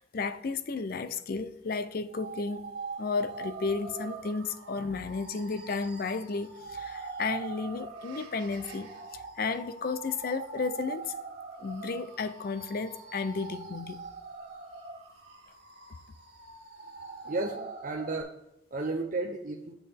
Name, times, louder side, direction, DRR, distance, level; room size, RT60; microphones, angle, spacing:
voice 1, 0.0-11.1 11.6-14.0, left 4 dB, 55° left, 0.5 m, -33 dB
sound 1, 2.1-18.2, right 4 dB, 65° right, 1.8 m, -43 dB
voice 2, 17.2-18.3 18.7-19.7, right 3 dB, 50° right, 0.6 m, -33 dB
8.6 x 7.3 x 3.4 m
head